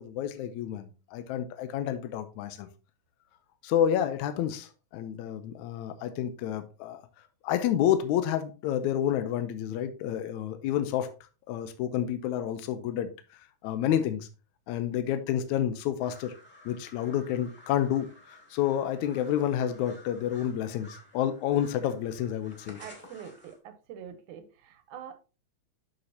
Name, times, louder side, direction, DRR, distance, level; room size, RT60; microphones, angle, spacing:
voice 1, 0.0-2.7 3.6-7.0 7.4-11.1 11.5-14.3 14.7-16.3 16.7-22.8, left 10 dB, 80° left, 2.0 m, -29 dB
sound 1, 16.0-23.6, left 1 dB, 5° left, 2.0 m, -53 dB
voice 2, 22.8-25.1, right 8 dB, 80° right, 2.3 m, -45 dB
8.5 x 6.5 x 2.8 m
omnidirectional pair, 3.6 m